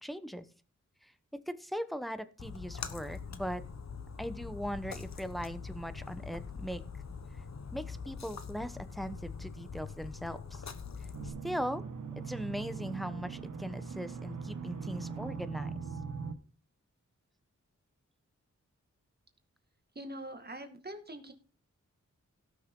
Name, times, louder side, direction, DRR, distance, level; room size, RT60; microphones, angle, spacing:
voice 1, 0.0-0.5 1.0-1.1 1.5-3.6 4.2-6.8 7.7-10.6 11.2-11.8 12.2-15.8, equal, ahead, 11 dB, 1.0 m, -39 dB
Splash splatter, 2.4-11.3, left 5 dB, 60° left, 1.2 m, -43 dB
sound 1, 11.1-16.3, right 5 dB, 85° right, 1.5 m, -40 dB
voice 2, 20.0-21.3, right 1 dB, 35° right, 6 dB, 2.0 m, -43 dB
17.5 x 6.4 x 3.8 m, 0.35 s
wide cardioid pair, 80°, 30 cm